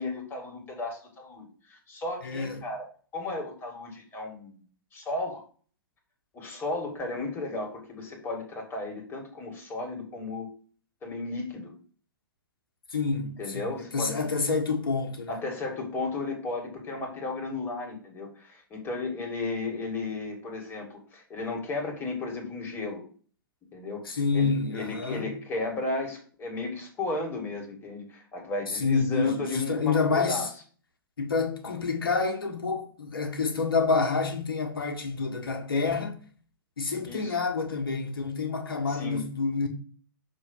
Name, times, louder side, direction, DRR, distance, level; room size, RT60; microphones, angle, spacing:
voice 1, 0.0-2.9 3.1-4.6 4.9-5.4 6.3-10.5 11.0-11.7 13.4-14.2 15.3-23.0 23.7-30.5 37.1-37.4 38.9-39.2, left 3 dB, 20° left, 2.3 m, -34 dB
voice 2, 2.2-2.7 12.9-15.5 24.1-25.3 28.7-30.5 31.2-36.2 36.8-39.7, left 4 dB, 75° left, 1.6 m, -28 dB
6.6 x 3.2 x 5.6 m
figure-of-eight pair, 120°, 12 cm